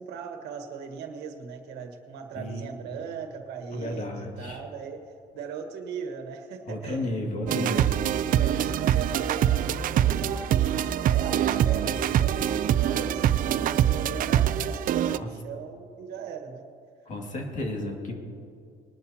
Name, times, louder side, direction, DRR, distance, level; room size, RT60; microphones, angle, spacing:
voice 1, 0.0-5.0 5.3-7.2 7.6-16.6, right 6 dB, 85° right, 5 dB, 1.4 m, -39 dB
voice 2, 2.4-2.9 3.7-4.6 6.7-7.8 15.1-15.3 17.1-18.1, left 1 dB, 45° left, 1 dB, 2.2 m, -33 dB
sound 1, 7.5-15.2, right 10 dB, 55° right, 0.4 m, -24 dB
20.5 x 11.5 x 2.9 m, 2.4 s
cardioid pair, 110°, 17 cm